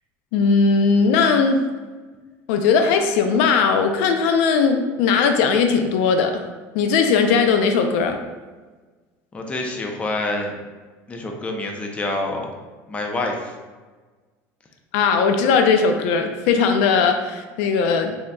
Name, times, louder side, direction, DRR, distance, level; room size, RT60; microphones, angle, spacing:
voice 1, 0.3-1.6 2.5-6.5 6.7-8.2 14.9-18.2, left 5 dB, 85° left, 6 dB, 0.4 m, -18 dB
voice 2, 9.3-10.6 11.1-12.5 12.9-13.5, left 2 dB, 15° left, 2 dB, 0.5 m, -27 dB
3.9 x 3.5 x 2.2 m, 1.3 s
cardioid pair, 140°, 7 cm